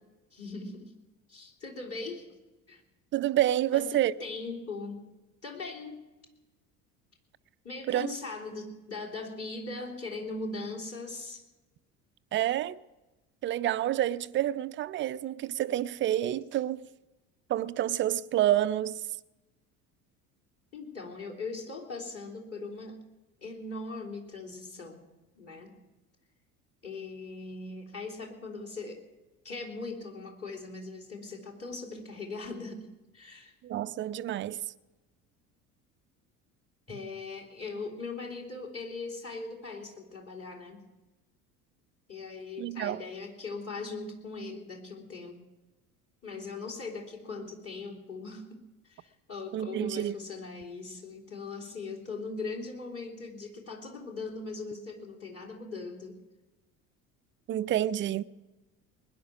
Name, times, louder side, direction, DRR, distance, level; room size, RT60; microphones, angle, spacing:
voice 1, 0.3-0.9 1.3-2.4 2.7-2.8 3.7-5.0 5.4-6.0 7.6-11.4 20.7-23.0 23.4-25.0 25.4-25.7 26.8-29.0 29.4-33.5 36.9-40.8 42.1-45.4 46.2-56.2, left 3 dB, 30° left, 3.6 m, -40 dB
voice 2, 3.1-4.1 7.9-8.1 12.3-12.8 13.4-16.9 17.5-19.1 33.6-34.6 42.6-43.0 49.5-50.2 57.5-58.2, right 12 dB, 25° right, 0.4 m, -28 dB
20.5 x 10.5 x 6.0 m
figure-of-eight pair, 60°, 46 cm